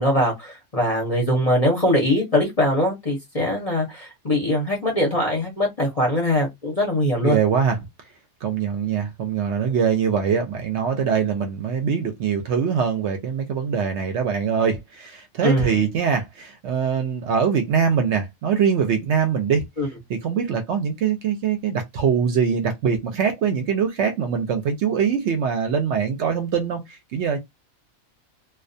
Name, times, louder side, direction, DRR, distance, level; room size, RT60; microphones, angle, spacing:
voice 1, 0.0-7.4 15.4-15.8 19.8-19.9, left 1 dB, 35° left, 0.6 m, -22 dB
voice 2, 7.2-7.8 8.4-19.7 20.1-27.4, right 7 dB, 65° right, 0.7 m, -23 dB
2.3 x 2.2 x 2.5 m
omnidirectional pair, 1.4 m